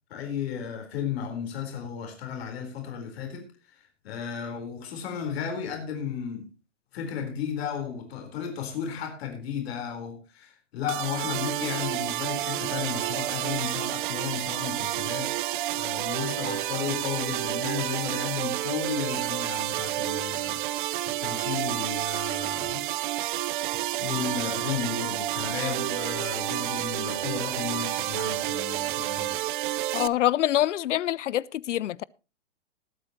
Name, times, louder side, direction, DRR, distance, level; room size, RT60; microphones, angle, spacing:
voice 1, 0.1-6.5 6.9-15.3 15.7-23.4 24.0-29.4, left 8 dB, 55° left, 4.3 m, -34 dB
sound 1, 10.9-30.1, right 15 dB, 45° right, 0.6 m, -30 dB
voice 2, 29.9-32.0, left 12 dB, 75° left, 0.5 m, -25 dB
20.5 x 8.7 x 3.0 m
hypercardioid pair, 130°, 36 cm